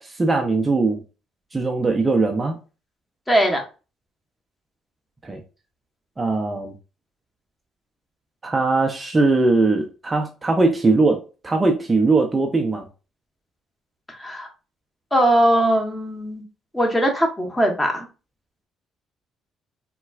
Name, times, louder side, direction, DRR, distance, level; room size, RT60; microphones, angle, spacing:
voice 1, 0.0-1.0 1.5-2.6 5.2-5.4 6.2-6.7 8.4-12.9, right 3 dB, 25° right, 2 dB, 0.5 m, -20 dB
voice 2, 3.3-3.6 14.2-14.5 15.1-16.4 16.7-18.1, right 1 dB, 10° left, 2 dB, 1.1 m, -20 dB
4.0 x 2.2 x 2.4 m, 0.32 s
supercardioid pair, 65°, 0 cm